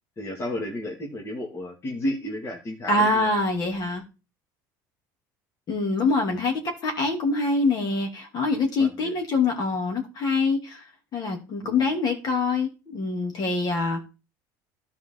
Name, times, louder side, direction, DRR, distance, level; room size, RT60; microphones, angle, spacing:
voice 1, 0.2-3.3 8.8-9.2 11.6-11.8, left 1 dB, 30° left, 2.2 m, -32 dB
voice 2, 2.9-4.0 5.7-10.8 11.1-14.0, left 3 dB, 45° left, 2.9 m, -25 dB
13.0 x 4.8 x 3.9 m
supercardioid pair, 110°, 9 cm